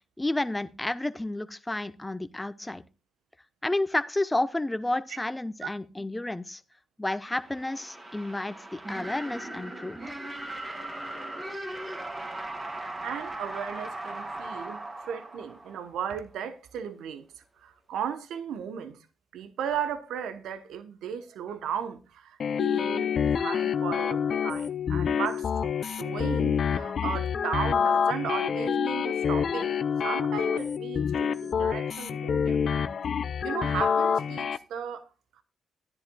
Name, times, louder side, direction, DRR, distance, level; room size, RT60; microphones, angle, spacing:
voice 1, 0.2-2.8 3.6-6.6 7.0-10.2, left 2 dB, 15° left, 0.9 m, -31 dB
sound 1, 7.3-16.1, right 1 dB, 30° right, 2.6 m, -38 dB
voice 2, 13.0-17.3 17.6-19.0 19.3-32.6 33.4-35.1, right 8 dB, 75° right, 1.0 m, -36 dB
sound 2, 22.4-34.6, left 7 dB, 55° left, 0.5 m, -27 dB
13.5 x 10.5 x 2.3 m
hypercardioid pair, 45°, 0 cm